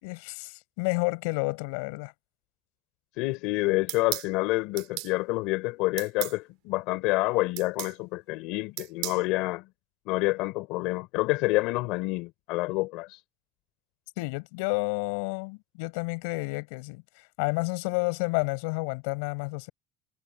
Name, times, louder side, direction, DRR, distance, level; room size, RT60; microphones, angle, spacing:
voice 1, 0.0-2.1 14.2-17.0 17.4-19.7, left 30 dB, 90° left, 6.2 m, -30 dB
voice 2, 3.2-9.6 10.1-13.2, left 21 dB, 70° left, 3.3 m, -28 dB
sound 1, 3.9-4.3 4.8-5.1 6.0-6.4 7.6-8.0 8.8-9.2, right 23 dB, 75° right, 2.6 m, -34 dB
cardioid pair, 145°, 0 cm